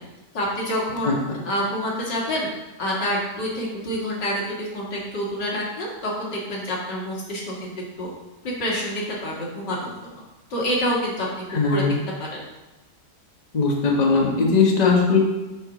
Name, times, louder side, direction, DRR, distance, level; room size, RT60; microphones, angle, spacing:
voice 1, 0.3-1.1 1.5-2.5 2.8-7.7 8.0-8.1 8.4-9.9 10.5-11.3 11.7-11.8 12.2-12.4, equal, 85° left, -3 dB, 2.5 m, -27 dB
voice 2, 1.0-1.4 11.5-12.0 13.5-15.2, left 4 dB, 30° left, -1 dB, 1.1 m, -19 dB
7.1 x 4.4 x 5.9 m, 1.1 s
omnidirectional pair, 1.8 m